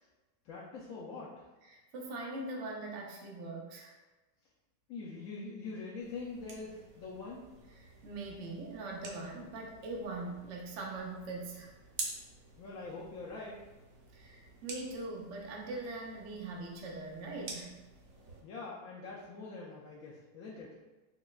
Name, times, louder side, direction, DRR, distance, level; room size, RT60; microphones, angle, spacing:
voice 1, 0.4-1.5 4.9-7.4 12.6-13.6 18.4-20.7, left 3 dB, 75° left, -5 dB, 0.7 m, -44 dB
voice 2, 1.6-3.9 7.7-11.7 14.1-17.8, right 2 dB, 85° right, -1 dB, 0.6 m, -42 dB
sound 1, 6.0-18.4, right 3 dB, 60° right, 1.0 m, -49 dB
5.8 x 2.1 x 2.3 m, 1.1 s
omnidirectional pair, 1.9 m